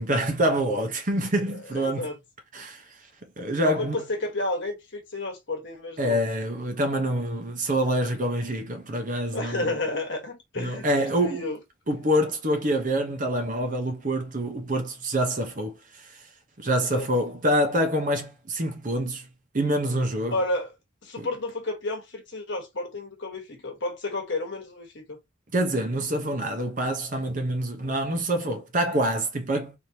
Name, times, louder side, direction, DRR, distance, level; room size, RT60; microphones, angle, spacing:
voice 1, 0.0-2.1 2.5-2.8 3.4-4.0 6.0-9.7 10.6-11.4 11.9-15.8 16.6-19.3 19.5-20.4 21.2-21.3 25.5-29.7, right 1 dB, 40° right, 0.9 m, -26 dB
voice 2, 1.7-2.1 2.6-2.7 3.6-6.2 9.3-11.6 16.8-17.1 20.3-20.7 21.0-25.2, left 2 dB, 60° left, 1.3 m, -31 dB
3.6 x 3.2 x 2.8 m
head